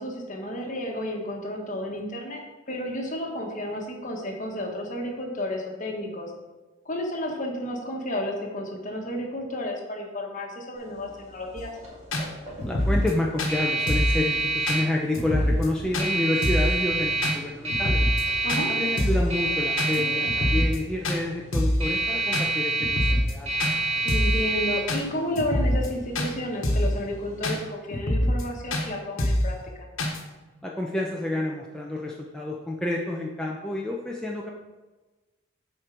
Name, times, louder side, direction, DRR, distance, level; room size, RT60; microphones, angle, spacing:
voice 1, 0.0-2.4 2.7-6.3 6.8-11.7 18.4-18.7 24.0-29.5, left 1 dB, 40° left, 1 dB, 1.2 m, -32 dB
sound 1, 10.8-27.6, right 2 dB, 30° right, 1.6 m, -29 dB
sound 2, 11.6-11.7 12.1-12.3 12.6-13.1 13.4-13.5 13.9-14.2 14.7-14.8 15.1-15.7 15.9-16.1 16.4-16.7 17.2-17.4 17.7-18.2 18.5-18.6 19.0-19.3 19.8-20.0 20.2-20.8 21.0-21.2 21.5-21.8 22.3-22.5 22.8-23.3 23.6-23.7 24.1-24.4 24.9-25.0 25.4-25.9 26.2-26.3 26.6-26.9 27.4-27.6 27.9-28.4 28.7-28.9 29.2-29.5 30.0-30.2, left 1 dB, 80° left, 1.1 m, -24 dB
voice 2, 12.7-18.0 18.7-23.5 30.6-34.5, left 1 dB, 5° left, -2 dB, 0.5 m, -29 dB
7.9 x 4.5 x 5.1 m, 1.2 s
head